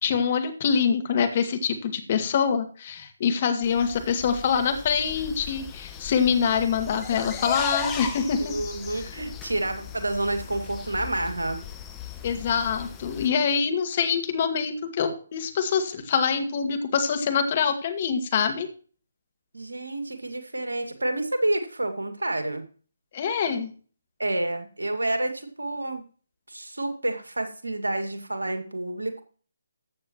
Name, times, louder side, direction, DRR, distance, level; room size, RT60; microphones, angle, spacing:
voice 1, 0.0-8.5 9.0-9.1 12.2-18.7 23.1-23.7, left 6 dB, 35° left, 7 dB, 1.9 m, -25 dB
sound 1, 3.6-13.3, left 7 dB, 15° left, 1.4 m, -37 dB
voice 2, 8.4-11.6 19.5-22.6 24.2-26.0 26.5-29.2, right 1 dB, 75° right, 7 dB, 2.2 m, -29 dB
14.5 x 8.6 x 3.0 m, 0.39 s
figure-of-eight pair, 140°, 0 cm